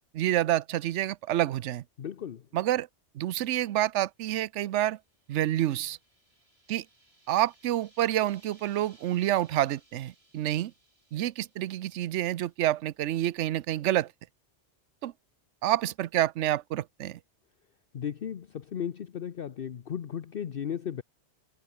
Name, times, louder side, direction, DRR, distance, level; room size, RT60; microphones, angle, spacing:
voice 1, 0.1-1.8 2.5-2.9 3.1-5.0 5.3-6.0 6.7-6.8 7.3-10.7 11.1-14.1 15.0-15.1 15.6-17.2, right 13 dB, 85° right, 0.9 m, -28 dB
voice 2, 2.0-2.4 17.9-21.0, left 8 dB, 55° left, 1.0 m, -35 dB
sound 1, 4.7-13.0, right 1 dB, 60° right, 7.5 m, -64 dB
omnidirectional pair, 1.2 m